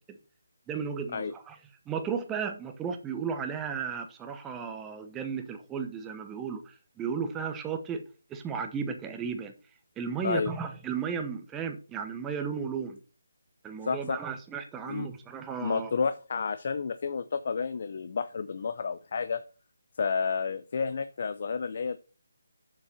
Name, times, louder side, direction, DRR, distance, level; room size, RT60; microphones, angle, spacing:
voice 1, 0.7-1.6 1.9-8.0 8.3-9.5 10.0-13.0 13.6-15.9, right 6 dB, 10° right, 6 dB, 0.9 m, -34 dB
voice 2, 13.8-14.2 14.9-15.1 15.6-19.4 20.0-22.0, left 5 dB, 45° left, 12 dB, 0.6 m, -30 dB
7.1 x 5.3 x 6.6 m, 0.35 s
hypercardioid pair, 165°, 0 cm